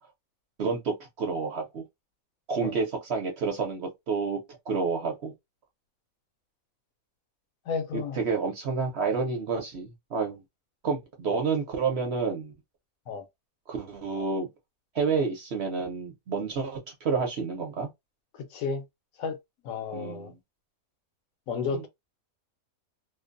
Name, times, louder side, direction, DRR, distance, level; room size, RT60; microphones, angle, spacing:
voice 1, 0.6-1.8 2.5-4.4 4.7-5.3 7.9-10.4 10.8-12.5 13.7-14.5 14.9-17.9 19.9-20.4 21.7-21.8, right 4 dB, 55° right, 0.9 m, -29 dB
voice 2, 7.7-8.2 11.3-11.4 13.1-13.2 18.3-18.8 19.2-19.4 19.6-20.3 21.5-21.9, left 5 dB, 70° left, 1.0 m, -32 dB
2.5 x 2.1 x 2.5 m
omnidirectional pair, 1.5 m